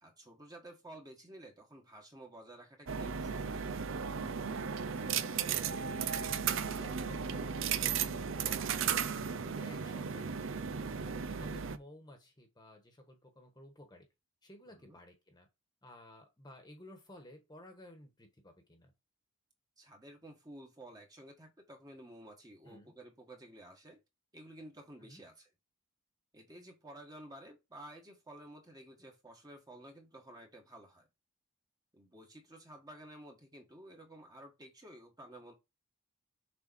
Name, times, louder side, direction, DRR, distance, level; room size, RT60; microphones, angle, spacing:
voice 1, 0.0-3.7 14.7-15.0 19.8-24.0 24.3-25.5 26.3-31.1 31.9-35.5, right 1 dB, 20° right, 1.5 m, -53 dB
sound 1, 2.9-11.8, right 7 dB, 60° right, 0.6 m, -35 dB
voice 2, 6.1-8.6 9.1-14.1 14.4-15.5 15.8-18.9 22.6-22.9 25.0-25.2, left 1 dB, 20° left, 1.3 m, -55 dB
6.8 x 4.3 x 4.1 m
head